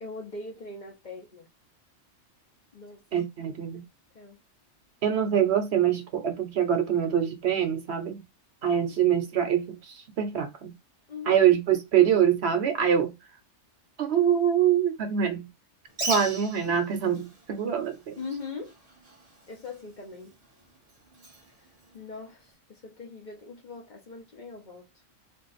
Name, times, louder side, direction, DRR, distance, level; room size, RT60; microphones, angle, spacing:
voice 1, 0.0-1.5 2.7-3.0 3.7-3.8 4.1-4.4 11.1-11.4 18.2-18.7 19.5-20.3 21.9-24.9, left 3 dB, 45° left, 0.8 m, -41 dB
voice 2, 3.1-3.8 5.0-8.2 8.6-10.7 11.3-13.1 14.0-15.5 16.1-18.2, right 9 dB, 65° right, 0.9 m, -24 dB
Bird, 15.9-22.5, right 2 dB, 35° right, 0.9 m, -40 dB
2.5 x 2.4 x 4.0 m
omnidirectional pair, 1.3 m